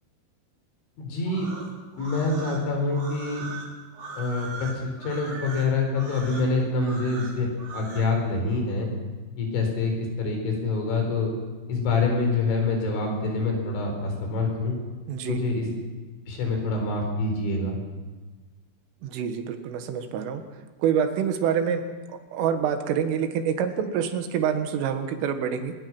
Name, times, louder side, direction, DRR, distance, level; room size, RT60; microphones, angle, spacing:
voice 1, 1.0-1.5 2.0-3.5 4.2-7.5 7.7-8.9 9.4-11.3 11.7-14.8 15.3-15.7 16.3-17.8, left 3 dB, 70° left, 2 dB, 6.7 m, -26 dB
sound 1, 1.2-8.1, right 3 dB, 50° right, 4.8 m, -40 dB
voice 2, 15.1-15.4 19.0-20.4 20.8-25.7, right 8 dB, 85° right, 7 dB, 4.1 m, -26 dB
24.0 x 20.5 x 6.1 m, 1.3 s
omnidirectional pair, 5.7 m